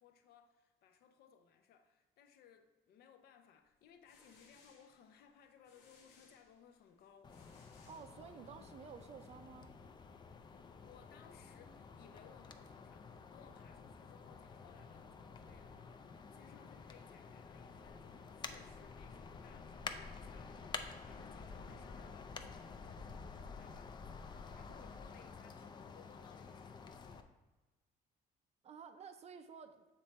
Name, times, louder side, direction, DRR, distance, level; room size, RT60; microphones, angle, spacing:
voice 1, 0.0-7.4 10.8-27.3, left 8 dB, 70° left, 0.6 m, -63 dB
sound 1, 3.8-8.7, left 4 dB, 90° left, 1.1 m, -67 dB
sound 2, 7.2-27.2, left 5 dB, 25° left, 0.4 m, -50 dB
voice 2, 7.9-9.8 28.6-29.9, right 6 dB, 40° right, 0.5 m, -53 dB
7.2 x 3.2 x 4.2 m
cardioid pair, 110°, 17 cm